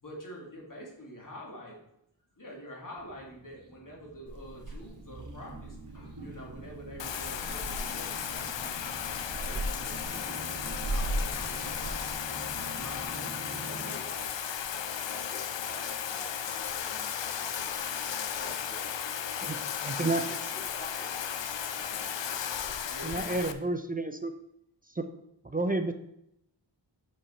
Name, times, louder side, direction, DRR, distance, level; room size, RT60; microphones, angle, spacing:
voice 1, 0.0-1.8 2.4-9.0 9.4-12.0 12.7-14.0 18.4-18.5 22.8-23.5, equal, 45° left, -2 dB, 2.1 m, -46 dB
sound 1, 3.0-13.9, right 2 dB, 65° right, 1.9 m, -46 dB
Purr / Meow, 4.3-13.1, right 1 dB, 40° right, 1.2 m, -39 dB
Bathtub (filling or washing), 7.0-23.5, left 8 dB, 70° left, 0.6 m, -35 dB
voice 2, 13.8-14.3 15.0-17.1 17.3-17.8 18.3-19.3 19.7-22.8, equal, 20° left, -4 dB, 2.4 m, -50 dB
voice 3, 19.4-20.2 23.0-24.3 25.0-25.1 25.4-25.9, right 2 dB, 20° right, 7 dB, 0.4 m, -30 dB
6.2 x 5.4 x 4.2 m, 0.79 s
wide cardioid pair, 80°, 45 cm